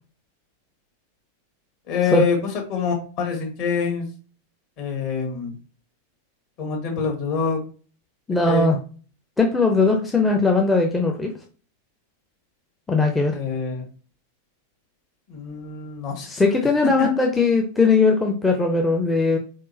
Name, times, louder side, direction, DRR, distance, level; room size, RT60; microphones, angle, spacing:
voice 1, 1.9-4.1 4.8-5.6 6.6-7.7 8.5-8.7 13.3-13.9 15.3-16.3 17.0-17.1, left 6 dB, 45° left, 1 dB, 1.6 m, -25 dB
voice 2, 8.3-8.8 9.4-11.3 12.9-13.4 16.3-19.4, left 3 dB, 10° left, 1 dB, 0.6 m, -19 dB
4.3 x 3.6 x 2.7 m, 0.39 s
figure-of-eight pair, 90°, 0 cm